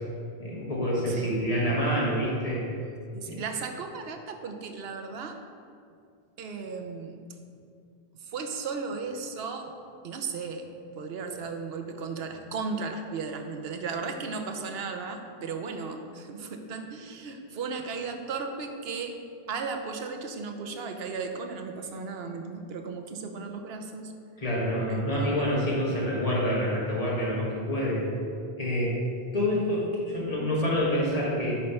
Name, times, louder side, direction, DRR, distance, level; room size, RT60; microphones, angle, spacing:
voice 1, 0.4-2.6 3.2-3.4 24.4-28.0 28.6-29.0 29.3-29.9 30.1-31.6, equal, 35° left, -5 dB, 1.6 m, -27 dB
voice 2, 1.1-1.4 3.1-5.4 6.4-7.2 8.1-9.7 10.0-10.7 11.0-19.2 19.5-24.1 24.9-25.8 29.5-29.9 30.6-30.7, right 4 dB, 75° right, 5 dB, 0.9 m, -36 dB
8.6 x 3.2 x 5.5 m, 2.3 s
omnidirectional pair, 1.1 m